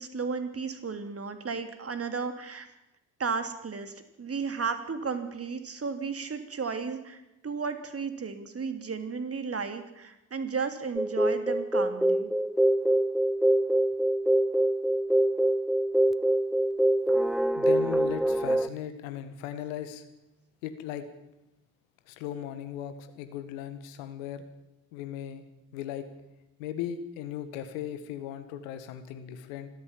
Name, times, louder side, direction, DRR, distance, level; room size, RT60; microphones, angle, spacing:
voice 1, 0.0-2.7 3.2-12.3, right 5 dB, 35° right, 9 dB, 3.1 m, -34 dB
sound 1, 11.0-18.7, right 1 dB, ahead, 0.7 m, -25 dB
voice 2, 17.5-20.0 20.6-21.1 22.1-24.4 24.9-25.4 25.7-26.1 26.6-29.7, left 10 dB, 70° left, 10 dB, 1.9 m, -37 dB
26.0 x 13.5 x 7.5 m, 0.91 s
figure-of-eight pair, 45°, 41 cm